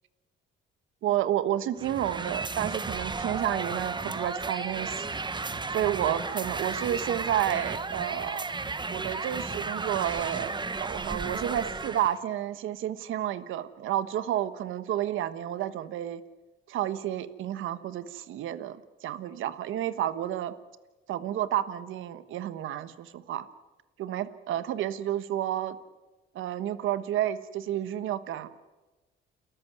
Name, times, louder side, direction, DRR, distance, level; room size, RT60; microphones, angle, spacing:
voice 1, 1.0-5.1 5.7-8.5 8.9-10.5 10.8-16.2 16.7-20.5 21.1-23.5 24.0-25.8 26.3-28.5, right 11 dB, 85° right, 13 dB, 1.3 m, -30 dB
sound 1, 1.8-12.2, right 3 dB, 25° right, 1.2 m, -34 dB
29.5 x 14.0 x 9.4 m, 1.1 s
cardioid pair, 90°, 20 cm